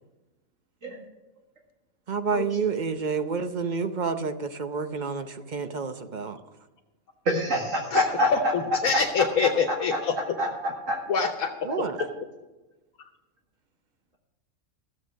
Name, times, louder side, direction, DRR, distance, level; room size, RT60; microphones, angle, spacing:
voice 1, 2.1-6.4 11.6-12.0, right 5 dB, 40° right, 8 dB, 0.8 m, -29 dB
voice 2, 7.3-8.5 10.4-10.5 10.9-11.0, left 1 dB, 65° right, -1 dB, 2.2 m, -25 dB
voice 3, 7.9-10.1 11.1-11.5, left 5 dB, 90° left, 2 dB, 1.4 m, -25 dB
14.5 x 7.6 x 6.3 m, 1.1 s
omnidirectional pair, 1.4 m